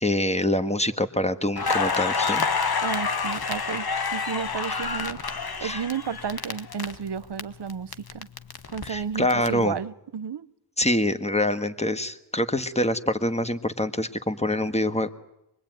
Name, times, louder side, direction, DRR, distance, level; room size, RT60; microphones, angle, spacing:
voice 1, 0.0-2.5 5.6-5.8 8.8-9.7 10.8-15.1, left 1 dB, 15° left, 10 dB, 1.5 m, -25 dB
Crackle, 1.6-7.4 7.7-9.5, left 5 dB, 65° left, 1.3 m, -28 dB
voice 2, 2.8-8.3 8.7-10.5, right 7 dB, 80° right, 17 dB, 0.9 m, -33 dB
25.0 x 21.0 x 9.2 m, 0.86 s
wide cardioid pair, 50°, 40 cm